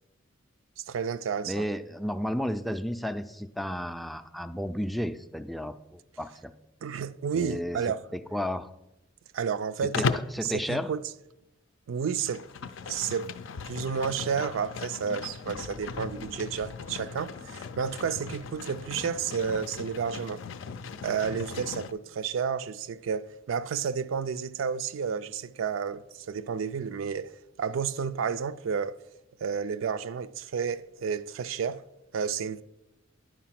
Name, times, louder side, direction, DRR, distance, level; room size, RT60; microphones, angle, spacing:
voice 1, 0.8-1.6 6.8-8.0 9.3-10.0 10.4-11.0 11.9-12.5 12.9-13.3 13.6-20.4 21.0-27.3 27.6-29.0 29.4-31.8 32.1-32.6, right 6 dB, 80° right, 0.4 m, -31 dB
voice 2, 1.4-6.5 7.3-7.8 8.1-8.7 9.8-10.9, equal, ahead, 0.3 m, -33 dB
Livestock farm animals working animals, 9.9-10.4 12.1-21.9, left 5 dB, 70° left, 0.4 m, -37 dB
10.0 x 4.8 x 5.8 m
head